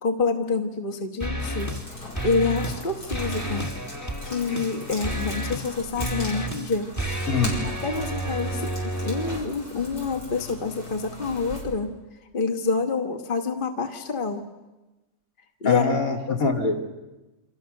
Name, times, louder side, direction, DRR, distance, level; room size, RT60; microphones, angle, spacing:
voice 1, 0.0-3.7 4.2-6.9 7.6-11.9 12.3-14.4 15.6-16.0 16.3-16.4, left 4 dB, 35° left, 5 dB, 1.5 m, -27 dB
sound 1, 1.2-1.9 2.2-2.8 3.1-9.4, right 1 dB, 10° left, 1.4 m, -31 dB
sound 2, 1.4-11.6, equal, 90° left, 7.0 m, -40 dB
voice 2, 15.6-16.9, left 4 dB, 60° left, 1 dB, 3.1 m, -23 dB
28.5 x 26.5 x 6.6 m, 1.1 s
omnidirectional pair, 1.6 m